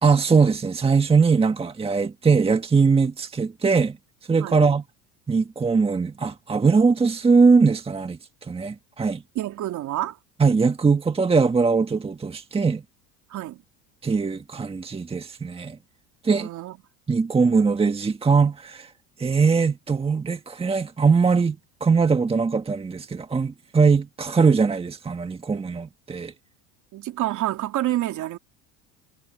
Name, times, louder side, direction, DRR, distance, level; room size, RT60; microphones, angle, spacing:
voice 1, 0.0-4.0 4.3-4.8 5.3-8.2 8.5-9.2 10.4-12.8 14.0-15.8 16.2-16.5 17.1-18.9 19.2-26.3, right 5 dB, 15° right, 1.5 m, -21 dB
voice 2, 9.3-10.2 13.3-13.6 16.3-16.8 26.9-28.4, right 14 dB, 50° right, 3.0 m, -28 dB
supercardioid pair, 115°, 39 cm